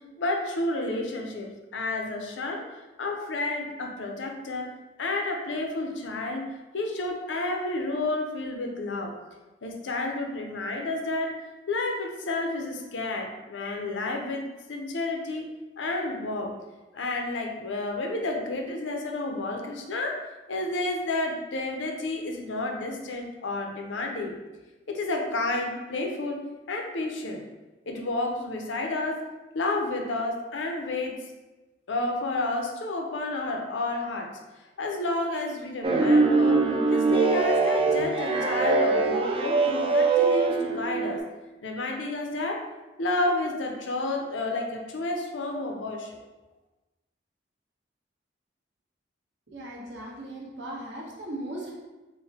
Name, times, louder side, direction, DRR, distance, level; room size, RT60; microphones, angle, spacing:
voice 1, 0.2-2.6 3.0-4.7 5.0-6.5 6.7-9.1 9.6-11.3 11.7-14.4 14.7-15.5 15.8-16.5 16.9-20.2 20.5-24.3 24.9-26.4 26.7-27.4 27.9-29.2 29.5-31.2 31.9-34.3 34.8-36.6 36.9-41.2 41.6-42.6 43.0-46.1, left 2 dB, 80° left, 2 dB, 0.6 m, -30 dB
sound 1, 35.8-41.2, right 3 dB, 30° right, 0.3 m, -23 dB
voice 2, 49.5-51.7, right 1 dB, 70° right, -4 dB, 1.0 m, -38 dB
3.8 x 2.1 x 4.1 m, 1.1 s
head